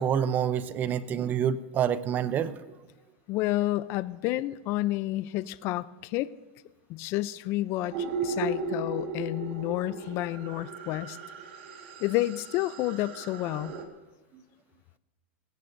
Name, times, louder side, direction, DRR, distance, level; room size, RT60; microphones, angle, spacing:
voice 1, 0.0-2.5 7.8-7.9, right 8 dB, 30° right, 14 dB, 0.6 m, -27 dB
voice 2, 3.3-6.3 6.9-11.2 12.0-13.7, left 16 dB, 45° left, 16 dB, 0.5 m, -30 dB
sound 1, 7.9-13.8, right 3 dB, 70° right, 1.8 m, -36 dB
21.0 x 17.0 x 2.7 m, 1.2 s
supercardioid pair, 135°, 6 cm